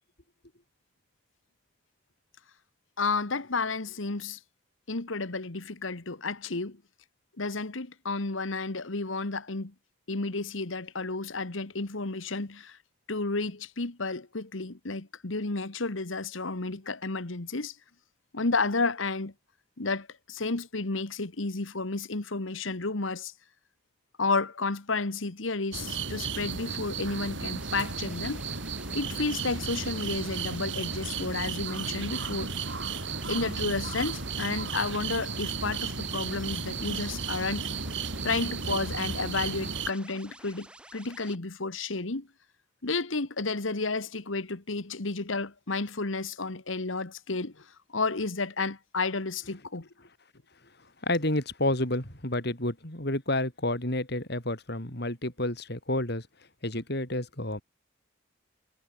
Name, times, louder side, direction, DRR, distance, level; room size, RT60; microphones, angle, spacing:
voice 1, 3.0-4.4 4.9-6.8 7.4-9.7 10.1-12.8 13.1-17.7 18.3-19.3 19.8-23.3 24.2-28.4 28.9-32.5 33.3-37.7 38.2-42.3 42.8-49.9, left 3 dB, 75° left, 1.6 m, -31 dB
sound 1, 25.7-39.9, right 5 dB, 65° right, 3.8 m, -34 dB
sound 2, 27.5-41.4, right 1 dB, 5° right, 6.0 m, -51 dB
voice 2, 51.0-56.2 56.6-57.6, left 1 dB, 55° left, 4.7 m, -30 dB
head